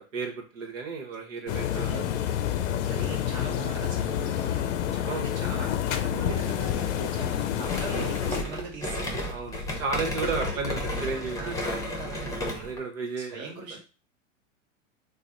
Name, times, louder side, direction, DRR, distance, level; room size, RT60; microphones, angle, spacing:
voice 1, 0.1-2.0 4.4-4.8 5.0-5.3 9.2-11.6 12.6-13.5, right 4 dB, 75° right, 1 dB, 1.0 m, -33 dB
sound 1, 1.5-8.4, left 10 dB, 65° left, 0.6 m, -28 dB
voice 2, 1.7-2.1 2.9-4.5 4.9-9.3 11.4-12.7 13.1-13.8, right 3 dB, 40° right, 0 dB, 1.3 m, -40 dB
sound 2, 7.6-12.8, left 1 dB, 10° left, 0.7 m, -33 dB
3.3 x 2.1 x 3.8 m, 0.33 s
hypercardioid pair, 105°, 39 cm